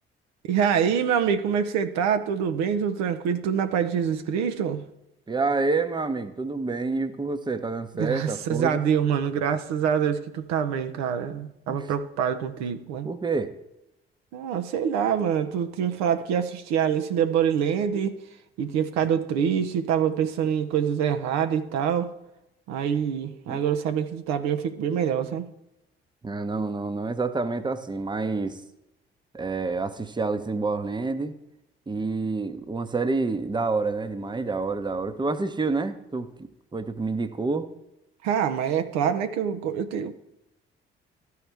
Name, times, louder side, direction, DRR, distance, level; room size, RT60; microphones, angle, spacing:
voice 1, 0.5-4.8 7.9-13.1 14.3-18.2 18.6-22.1 22.7-25.5 38.2-40.1, right 8 dB, 65° right, 0.7 m, -25 dB
voice 2, 5.3-8.8 11.7-11.9 13.0-13.5 23.5-23.6 26.2-28.6 29.3-31.3 31.9-37.7, right 3 dB, 15° right, 0.8 m, -28 dB
13.5 x 4.7 x 3.4 m
figure-of-eight pair, 45°, 29 cm